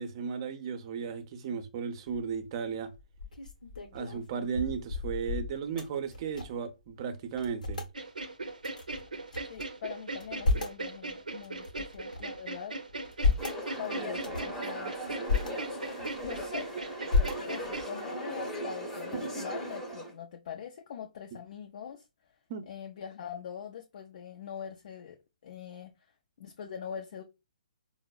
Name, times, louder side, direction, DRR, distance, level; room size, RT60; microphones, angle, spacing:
voice 1, 0.0-2.9 3.9-7.8 22.5-22.7, right 6 dB, 40° right, 0.6 m, -35 dB
sound 1, 2.1-2.4 2.9-6.7 7.0-7.1 7.3-7.9 8.6-9.6 10.1-10.8 11.4-12.4 12.9-13.6 14.1-14.6 15.1-15.5 16.0-16.6 17.1-17.8, left 4 dB, 75° left, 0.8 m, -32 dB
sound 2, 7.9-17.9, right 2 dB, 80° right, 0.6 m, -39 dB
voice 2, 9.5-12.8 13.8-14.9 16.2-16.7 17.5-22.0 22.7-25.2 25.4-25.9 26.4-27.2, left 8 dB, 50° left, 0.4 m, -42 dB
sound 3, 13.4-20.1, right 1 dB, 10° left, 0.8 m, -38 dB
4.5 x 2.0 x 2.2 m
figure-of-eight pair, 135°, 4 cm